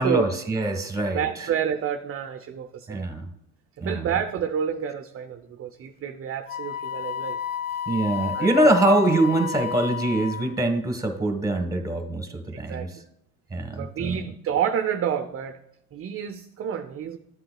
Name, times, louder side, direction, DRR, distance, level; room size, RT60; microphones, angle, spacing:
voice 1, 0.0-1.5 2.9-3.3 3.8-4.1 7.9-12.9 13.5-14.1, right 1 dB, 5° right, 6 dB, 1.4 m, -24 dB
voice 2, 1.1-3.1 3.8-7.4 8.3-9.0 12.5-12.9 13.7-15.6 15.9-17.2, right 8 dB, 30° right, 7 dB, 0.5 m, -29 dB
Wind instrument woodwind instrument, 6.5-10.6, left 9 dB, 20° left, 0.4 m, -32 dB
13.0 x 7.6 x 2.3 m, 0.82 s
hypercardioid pair, 75°, 47 cm